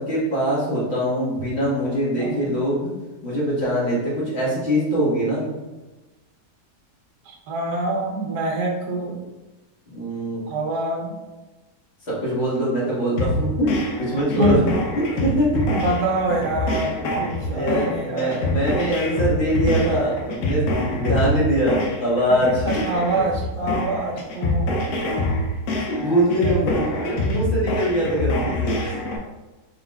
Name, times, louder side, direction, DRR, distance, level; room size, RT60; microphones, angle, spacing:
voice 1, 0.0-2.9 3.2-5.5 9.9-10.4 12.0-14.6 14.9-15.6 17.5-22.7 25.9-29.0, equal, 40° left, -8 dB, 1.9 m, -23 dB
voice 2, 2.2-2.5 7.2-9.2 10.5-11.2 14.3-14.6 15.7-18.7 22.6-24.9 26.4-27.3, right 2 dB, 75° right, -1 dB, 1.3 m, -26 dB
sound 1, 13.2-29.2, left 1 dB, 70° left, 1.1 m, -25 dB
4.4 x 3.9 x 2.3 m, 1.1 s
omnidirectional pair, 1.8 m